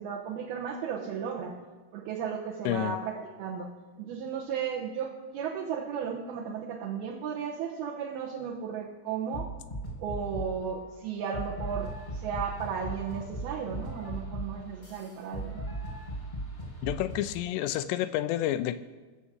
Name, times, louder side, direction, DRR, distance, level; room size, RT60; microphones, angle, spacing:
voice 1, 0.0-1.5 1.9-3.7 4.0-9.5 10.0-15.6, right 7 dB, 70° right, -3 dB, 2.8 m, -35 dB
voice 2, 2.7-3.0 16.8-18.8, left 13 dB, 85° left, 12 dB, 2.7 m, -29 dB
sound 1, 9.3-10.6 11.3-17.3, right 1 dB, 20° left, 1.2 m, -38 dB
19.0 x 7.1 x 6.4 m, 1.3 s
omnidirectional pair, 5.0 m